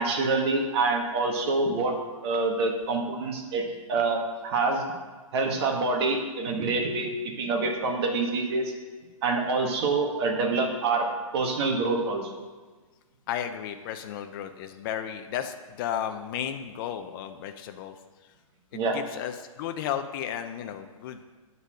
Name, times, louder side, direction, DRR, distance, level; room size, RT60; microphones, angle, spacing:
voice 1, 0.0-1.9 2.2-4.8 5.3-8.7 9.2-11.1 11.3-12.2 18.7-19.0, right 3 dB, 45° right, 2 dB, 1.5 m, -26 dB
voice 2, 13.3-18.0 18.7-21.2, left 9 dB, 40° left, 7 dB, 0.5 m, -34 dB
10.0 x 4.1 x 6.3 m, 1.3 s
hypercardioid pair, 140°, 18 cm